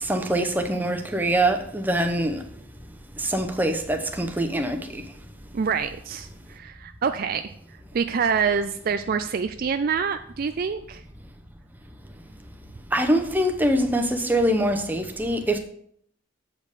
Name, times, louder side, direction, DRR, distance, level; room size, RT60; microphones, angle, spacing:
voice 1, 0.0-2.4 3.2-5.0 12.9-15.6, right 1 dB, 10° right, 0.7 m, -24 dB
voice 2, 5.5-7.5 7.9-11.0, right 6 dB, 45° right, 0.3 m, -26 dB
8.1 x 5.3 x 6.6 m
head